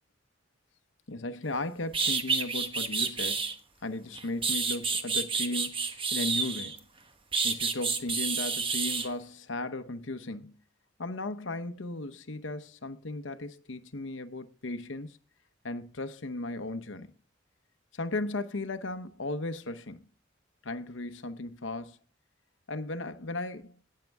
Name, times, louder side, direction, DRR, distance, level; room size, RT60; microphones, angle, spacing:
voice 1, 1.1-3.5 3.8-6.8 7.4-10.6 11.0-15.2 15.6-17.1 17.9-20.1 20.6-22.0 22.7-23.8, left 2 dB, 75° left, 0.9 m, -36 dB
sound 1, 1.5-1.6 1.9-3.5 4.1-6.8 7.3-9.1, right 4 dB, 25° right, 1.2 m, -29 dB
18.5 x 6.7 x 3.5 m
head